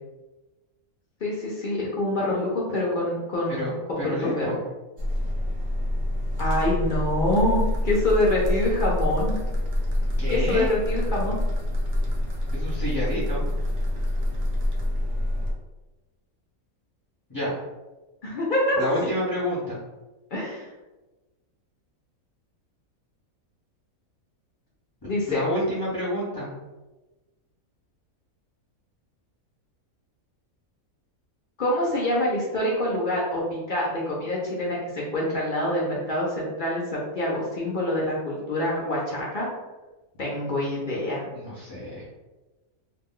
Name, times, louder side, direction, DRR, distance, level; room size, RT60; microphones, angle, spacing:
voice 1, 1.2-4.5 6.4-9.4 10.3-11.4 18.2-19.1 20.3-20.7 25.0-25.4 31.6-39.5 40.2-41.2, left 1 dB, 70° left, -4 dB, 0.4 m, -26 dB
voice 2, 4.0-4.6 10.2-10.7 12.5-13.5 17.3-17.6 18.8-19.8 25.0-26.5 41.3-42.0, equal, 20° left, -11 dB, 0.8 m, -29 dB
sound 1, 5.0-15.5, left 1 dB, 70° right, 0.4 m, -26 dB
2.4 x 2.2 x 3.6 m, 1.1 s
omnidirectional pair, 1.5 m